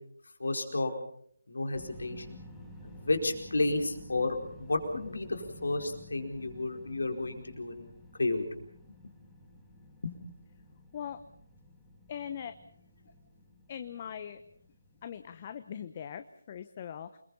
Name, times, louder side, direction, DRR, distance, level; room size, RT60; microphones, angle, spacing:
voice 1, 0.4-0.9 1.5-2.4 2.8-7.9 8.2-8.4 10.0-10.1, left 2 dB, 70° left, 4 dB, 4.6 m, -32 dB
sound 1, 1.7-15.7, left 1 dB, 5° left, 3.4 m, -52 dB
voice 2, 12.1-12.5 13.7-14.4 15.0-17.2, left 8 dB, 30° left, 10 dB, 1.0 m, -41 dB
28.5 x 21.5 x 5.6 m, 0.63 s
figure-of-eight pair, 155°, 0 cm